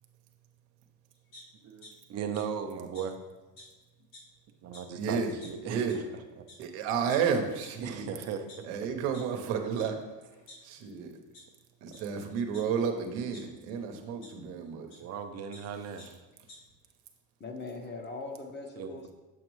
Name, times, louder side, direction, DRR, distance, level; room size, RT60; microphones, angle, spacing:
sound 1, 1.3-1.9 2.3-2.4 2.9-3.0 3.6-3.7 4.0-4.3 4.7-4.8 5.4-5.5 5.9-6.0 6.5-6.6 7.1-7.2 7.6-7.7 8.3-9.2 9.8-9.9 10.2-10.9 11.3-11.4 11.9-12.0 12.5-13.4 14.2-14.3 14.9-15.0 15.3-15.6 16.0-16.1 16.3-16.6, left 2 dB, 85° left, 2.2 m, -51 dB
voice 1, 1.6-3.2 4.6-6.5 7.8-8.7 13.9-14.0 15.0-16.1 18.8-18.9, right 7 dB, 35° right, 6 dB, 0.6 m, -38 dB
voice 2, 5.0-5.3 5.6-6.0 6.6-7.9 8.7-9.9 10.6-11.1 11.8-14.9, right 6 dB, 80° right, 5 dB, 1.0 m, -31 dB
voice 3, 17.4-19.1, left 3 dB, 25° left, 3 dB, 0.8 m, -40 dB
7.7 x 5.1 x 3.1 m, 1.2 s
cardioid pair, 125°, 44 cm